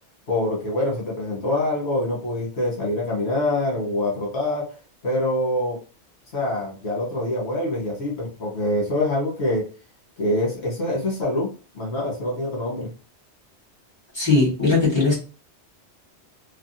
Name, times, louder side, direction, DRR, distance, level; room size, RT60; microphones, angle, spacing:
voice 1, 0.3-4.6 5.0-5.8 6.3-9.6 10.2-11.5 11.7-12.9, left 1 dB, 75° left, -3 dB, 1.4 m, -25 dB
voice 2, 14.1-15.2, left 3 dB, 25° left, -7 dB, 1.8 m, -19 dB
3.4 x 2.3 x 2.6 m, 0.36 s
omnidirectional pair, 1.1 m